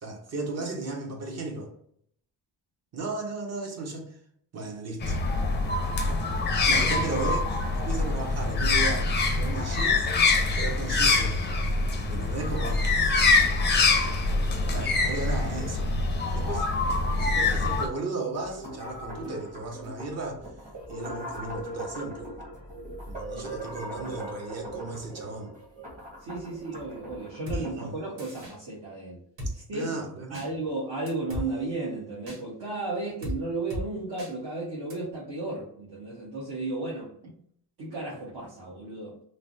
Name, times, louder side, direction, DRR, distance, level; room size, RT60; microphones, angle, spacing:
voice 1, 0.0-1.7 2.9-4.1 4.5-5.2 6.7-10.1 10.6-11.5 12.0-13.0 14.7-15.9 16.3-16.7 17.2-20.5 20.9-22.3 23.1-25.5 27.5-27.9 29.4-30.4, right 3 dB, 40° right, 2 dB, 0.7 m, -35 dB
sound 1, 5.0-17.9, left 3 dB, 25° left, 0.4 m, -25 dB
sound 2, 18.3-27.9, right 1 dB, 20° right, 1.1 m, -40 dB
voice 2, 26.2-29.2 29.5-29.9 30.3-37.3 37.8-39.1, right 2 dB, 65° right, -7 dB, 1.1 m, -34 dB
Drum kit, 27.5-27.6 28.2-28.5 29.4-29.5 30.3-30.5 31.1-31.5 32.3-32.4 33.2-33.4 33.7-33.9 34.2-34.3 34.9-35.0, equal, 90° right, 1.2 m, -34 dB
3.2 x 2.0 x 2.6 m, 0.67 s
cardioid pair, 130°, 41 cm